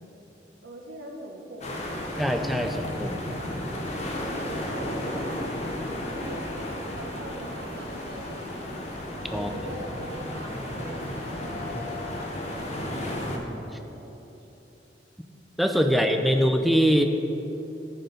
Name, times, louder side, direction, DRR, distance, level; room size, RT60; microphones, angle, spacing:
voice 1, 0.6-2.2 3.4-4.0 4.7-9.0 9.3-13.1 13.6-14.5 15.9-16.0, right 1 dB, 80° right, 1 dB, 1.1 m, -43 dB
sound 1, 1.6-13.4, left 1 dB, 40° left, 0.9 m, -33 dB
voice 2, 2.2-3.3 9.3-9.5 13.3-13.6 15.6-17.0, equal, ahead, 5 dB, 0.4 m, -23 dB
sound 2, 6.9-12.5, left 2 dB, 55° left, 1.4 m, -42 dB
11.5 x 4.4 x 5.2 m, 3.0 s
head